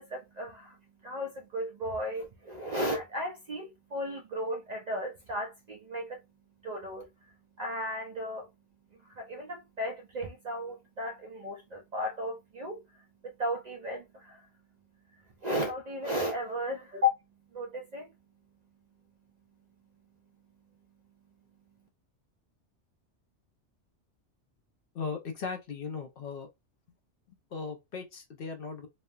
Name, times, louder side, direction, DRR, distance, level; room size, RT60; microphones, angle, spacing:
voice 1, 0.0-21.9, left 1 dB, 55° right, 0.5 m, -36 dB
voice 2, 24.9-26.5 27.5-28.9, left 5 dB, 60° left, 0.7 m, -37 dB
3.1 x 2.0 x 2.2 m
omnidirectional pair, 1.2 m